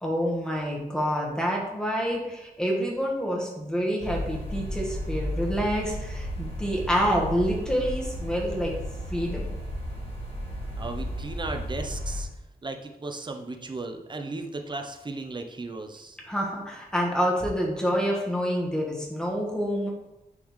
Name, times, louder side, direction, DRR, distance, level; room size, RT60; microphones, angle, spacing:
voice 1, 0.0-8.7 9.1-9.5 16.3-19.9, equal, 5° left, -2 dB, 1.3 m, -27 dB
sound 1, 4.0-12.2, equal, 40° left, 1.4 m, -33 dB
voice 2, 10.8-12.3 12.6-16.2, right 3 dB, 30° right, 4 dB, 0.7 m, -36 dB
10.5 x 3.8 x 3.2 m, 0.94 s
wide cardioid pair, 175°, 16 cm